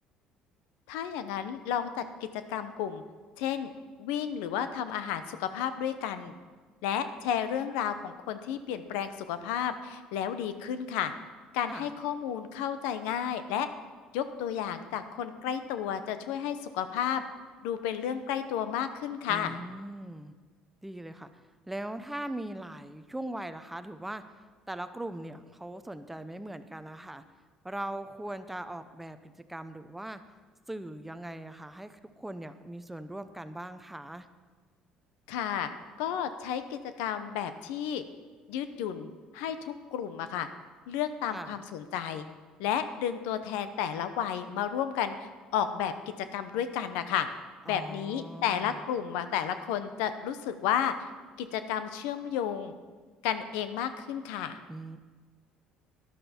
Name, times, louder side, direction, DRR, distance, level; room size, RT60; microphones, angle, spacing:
voice 1, 0.9-2.0 2.5-3.0 3.4-3.7 4.0-6.3 6.8-11.1 11.5-13.7 14.1-17.2 17.6-19.6 35.3-35.7 36.0-38.0 38.5-40.5 40.9-42.3 42.6-45.2 45.5-45.9 46.3-47.3 47.6-50.9 51.4-52.7 53.2-54.6, left 9 dB, 90° left, 10 dB, 0.8 m, -32 dB
voice 2, 19.3-20.3 20.8-21.3 21.7-24.2 24.7-27.2 27.6-30.2 30.7-34.3 41.3-41.6 47.7-48.8 54.7-55.0, right 1 dB, 5° right, 10 dB, 0.6 m, -40 dB
12.5 x 11.0 x 4.4 m, 1.4 s
cardioid pair, 105°, 2 cm